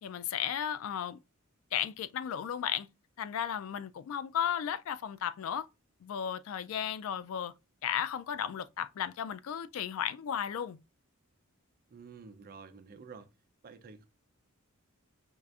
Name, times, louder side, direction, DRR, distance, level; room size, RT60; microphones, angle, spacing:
voice 1, 0.0-1.2 1.7-2.9 3.2-5.7 6.0-7.5 7.8-10.8, left 9 dB, 70° left, 0.3 m, -34 dB
voice 2, 11.9-13.3 13.6-14.1, right 5 dB, 45° right, 0.5 m, -50 dB
5.4 x 2.4 x 2.3 m
head